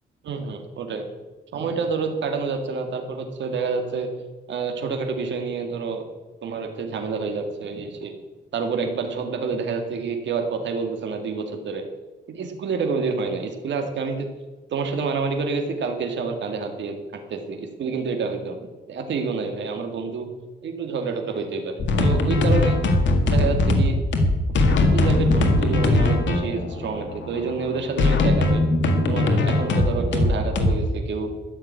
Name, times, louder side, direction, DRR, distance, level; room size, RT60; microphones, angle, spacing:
voice 1, 0.2-1.1 1.5-4.1 4.5-6.1 6.4-8.1 8.5-11.8 12.3-14.3 14.7-18.6 18.9-20.3 20.6-22.8 23.3-24.0 24.7-28.7 29.1-31.3, right 4 dB, 80° right, 4 dB, 2.0 m, -28 dB
sound 1, 21.8-30.7, left 2 dB, 85° left, 1.9 m, -20 dB
13.5 x 7.0 x 9.5 m, 1.2 s
cardioid pair, 100°, 19 cm